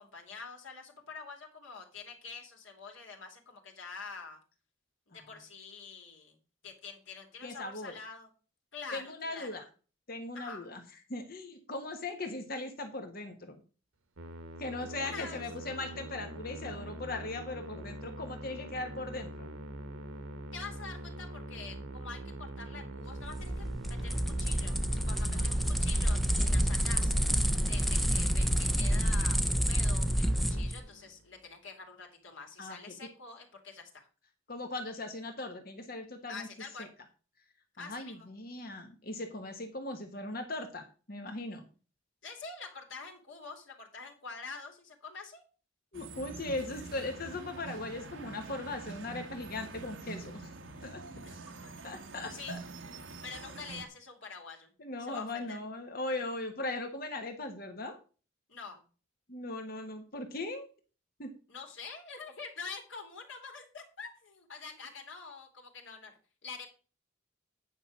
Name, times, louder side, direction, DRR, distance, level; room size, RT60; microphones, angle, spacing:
voice 1, 0.0-4.4 5.1-6.4 6.6-8.3 8.7-9.6 10.3-10.7 15.0-15.4 20.5-27.1 27.7-34.1 36.3-36.9 37.8-38.3 42.2-45.4 52.3-52.6 53.2-54.7 55.0-55.6 58.5-58.8 61.5-66.1 66.4-66.7, left 4 dB, 65° left, 2 dB, 2.7 m, -46 dB
voice 2, 7.4-7.9 8.9-9.6 10.1-10.8 11.1-13.6 14.6-19.5 25.2-25.5 32.6-32.9 34.5-36.5 36.8-36.9 37.8-41.6 45.9-50.5 50.8-51.0 51.8-52.6 54.8-58.0 59.3-60.7 61.2-61.3, left 2 dB, 45° left, 5 dB, 1.4 m, -39 dB
Musical instrument, 14.2-31.3, right 1 dB, 90° right, 1.2 m, -44 dB
sound 1, 23.2-30.8, equal, ahead, 0.5 m, -28 dB
sound 2, 45.9-53.9, right 3 dB, 65° right, 1.3 m, -46 dB
9.6 x 5.4 x 6.2 m, 0.36 s
head